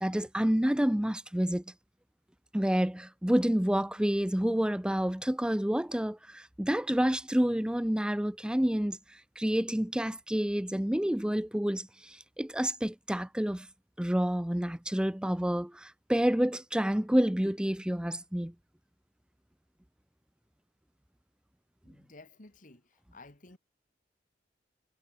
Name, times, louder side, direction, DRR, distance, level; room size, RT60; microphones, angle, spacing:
voice 1, 0.0-1.6 2.5-9.0 9.4-13.7 14.0-18.5, equal, 5° right, 0.5 m, -29 dB
voice 2, 21.8-22.8 23.1-23.6, left 2 dB, 50° left, 2.4 m, -53 dB
head